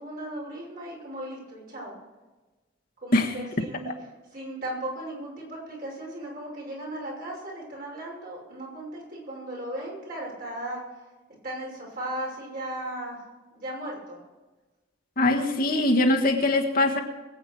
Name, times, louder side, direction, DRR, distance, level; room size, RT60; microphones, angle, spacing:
voice 1, 0.0-1.9 3.0-3.9 4.3-10.8 11.4-13.2 13.5-14.2, right 1 dB, 50° right, 5.9 m, -36 dB
voice 2, 15.2-17.0, left 2 dB, 50° left, 1.5 m, -22 dB
22.5 x 8.6 x 4.7 m
head